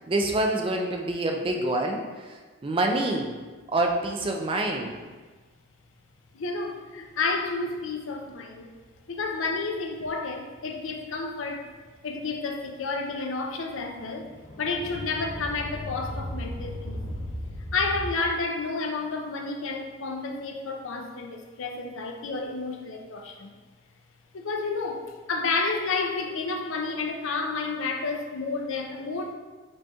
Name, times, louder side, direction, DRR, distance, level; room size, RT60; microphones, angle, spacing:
voice 1, 0.1-3.3 3.7-4.9, right 2 dB, 25° right, 2 dB, 0.3 m, -26 dB
sound 1, 3.6-3.8 7.1-7.2 7.4-7.5 7.9-8.1 8.8-9.3 9.6-10.2 10.5-13.2 13.5-18.1, left 1 dB, 45° left, 0.8 m, -37 dB
voice 2, 6.3-8.7 9.1-11.7 12.0-14.3 14.6-17.0 17.7-23.6 24.3-29.3, left 3 dB, 70° left, 3 dB, 0.5 m, -30 dB
5.2 x 4.2 x 2.3 m, 1.3 s
head